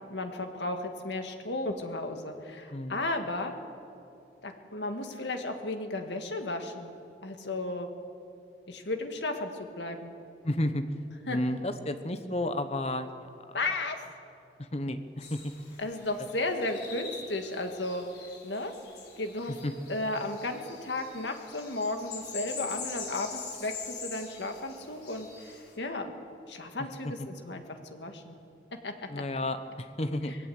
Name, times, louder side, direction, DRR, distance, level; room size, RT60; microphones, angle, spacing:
voice 1, 0.1-3.5 4.4-6.9 7.2-7.9 8.7-10.1 11.3-11.4 13.5-14.0 15.8-18.1 18.4-18.7 19.2-19.5 19.9-26.1 26.5-27.6 27.9-28.4 28.8-29.2 30.3-30.4, left 2 dB, 85° left, 5 dB, 1.9 m, -34 dB
voice 2, 2.7-3.0 10.4-10.8 11.3-13.1 14.6-15.4 19.6-19.7 27.0-27.1 29.1-30.3, left 1 dB, 35° left, 10 dB, 1.0 m, -31 dB
sound 1, 15.2-25.7, left 5 dB, 70° left, 3.9 m, -44 dB
20.0 x 17.0 x 8.0 m, 2.6 s
head